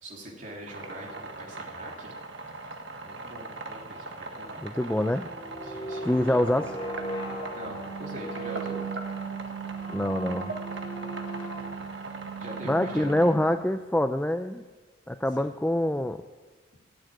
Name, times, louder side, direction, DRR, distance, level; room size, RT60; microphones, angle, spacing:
voice 1, 0.0-2.1 3.0-4.6 5.6-6.4 7.5-8.8 12.4-13.1 15.4-15.5, right 1 dB, 40° right, -2 dB, 3.3 m, -43 dB
sound 1, 0.7-13.3, right 2 dB, 65° right, 1.5 m, -40 dB
voice 2, 4.6-5.3 6.0-6.8 9.9-10.5 12.6-14.6 15.1-16.2, left 1 dB, 5° left, 8 dB, 0.3 m, -25 dB
sound 2, 5.0-13.8, right 3 dB, 25° left, 2.6 m, -37 dB
15.5 x 8.0 x 9.1 m, 1.3 s
head